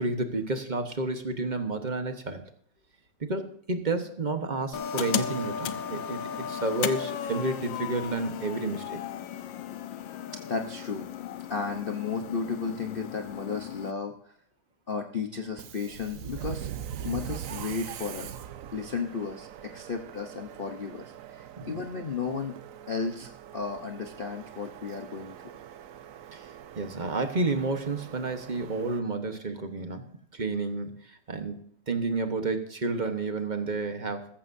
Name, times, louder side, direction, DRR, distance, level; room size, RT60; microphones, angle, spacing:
voice 1, 0.0-2.4 3.2-9.0 21.6-21.8 26.3-26.5 26.8-30.0 30.3-34.3, right 3 dB, 30° right, 7 dB, 1.0 m, -31 dB
sound 1, 4.7-13.9, left 8 dB, 75° left, 1.5 m, -35 dB
voice 2, 10.3-11.1 11.5-14.3 14.9-16.7 17.0-18.4 18.7-22.6 22.9-25.3, left 5 dB, 40° left, 4 dB, 0.8 m, -34 dB
Subway metro underground, 15.5-29.0, right 10 dB, 65° right, 0.8 m, -42 dB
14.5 x 14.5 x 2.7 m, 0.62 s
omnidirectional pair, 2.1 m